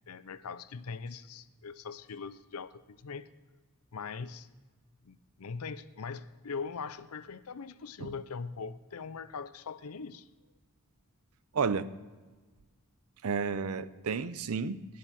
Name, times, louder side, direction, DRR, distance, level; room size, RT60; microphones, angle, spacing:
voice 1, 0.1-3.3 3.9-4.5 5.0-10.3, left 5 dB, 80° left, 0.6 m, -41 dB
voice 2, 11.5-11.9 13.2-14.9, right 5 dB, 80° right, 0.6 m, -31 dB
19.0 x 6.7 x 4.2 m
head